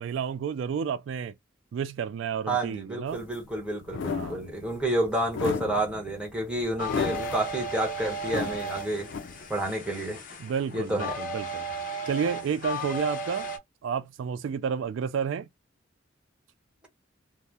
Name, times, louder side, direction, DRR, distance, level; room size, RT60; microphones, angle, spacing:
voice 1, 0.0-1.3 1.7-3.2 4.1-4.4 10.4-11.7 12.1-13.5 13.8-15.5, right 7 dB, 75° right, 0.3 m, -31 dB
voice 2, 2.5-9.1 9.5-10.2 10.7-11.2, right 1 dB, 5° right, 1.0 m, -29 dB
sound 1, 3.1-9.7, left 5 dB, 70° left, 0.4 m, -35 dB
sound 2, 6.8-13.6, right 1 dB, 45° left, 0.8 m, -35 dB
2.7 x 2.0 x 3.4 m
head